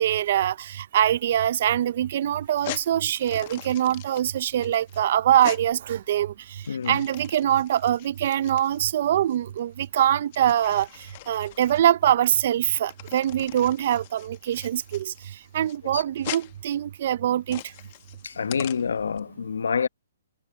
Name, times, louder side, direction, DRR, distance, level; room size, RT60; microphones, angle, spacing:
voice 1, 0.0-6.3 6.9-10.9 11.3-15.1 15.5-17.6, right 11 dB, 50° right, 0.6 m, -23 dB
sound 1, 2.4-19.2, left 17 dB, 40° left, 1.2 m, -42 dB
voice 2, 6.7-7.0 15.9-16.0 18.2-19.9, left 6 dB, 85° left, 1.2 m, -27 dB
hypercardioid pair, 150°, 0 cm